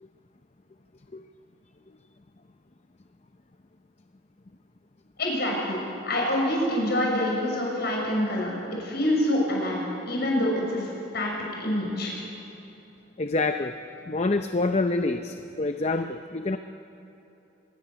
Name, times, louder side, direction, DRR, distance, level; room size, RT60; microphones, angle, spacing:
voice 1, 5.2-8.5 8.8-11.3 11.6-12.1, left 1 dB, 55° left, -2 dB, 6.4 m, -26 dB
voice 2, 13.2-13.7 14.1-16.6, left 3 dB, 35° left, 7 dB, 0.6 m, -26 dB
25.0 x 20.0 x 6.9 m, 2.9 s
head